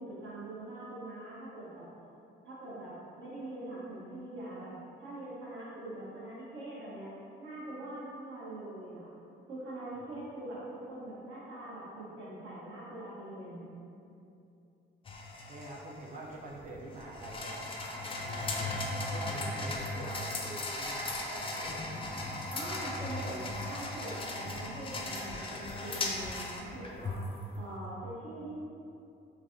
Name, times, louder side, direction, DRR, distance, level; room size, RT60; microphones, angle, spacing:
voice 1, 0.0-1.8 2.4-4.7 5.0-7.1 7.4-9.1 9.5-13.7 22.5-27.2 27.5-28.5, right 1 dB, 70° right, -8 dB, 1.0 m, -43 dB
sound 1, 15.1-27.4, left 2 dB, 25° left, 0.4 m, -37 dB
voice 2, 15.5-18.7 19.1-22.0, right 1 dB, 40° right, -3 dB, 0.4 m, -45 dB
3.3 x 2.3 x 2.5 m, 2.7 s
cardioid pair, 90°, 20 cm